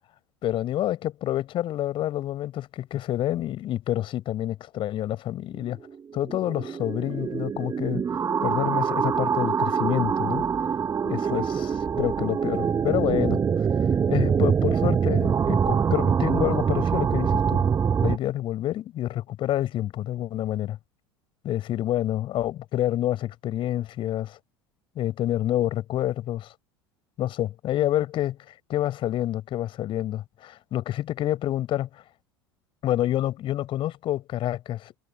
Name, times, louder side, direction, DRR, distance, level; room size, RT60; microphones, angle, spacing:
voice 1, 0.4-5.8 6.1-8.0 8.4-10.4 11.0-13.4 14.1-17.6 18.0-20.8 21.4-24.4 24.9-26.5 27.2-28.4 28.7-31.9 32.8-35.0, left 13 dB, 40° left, 5.0 m, -28 dB
sound 1, 5.9-18.2, right 7 dB, 25° right, 1.4 m, -24 dB
figure-of-eight pair, 70°, 13 cm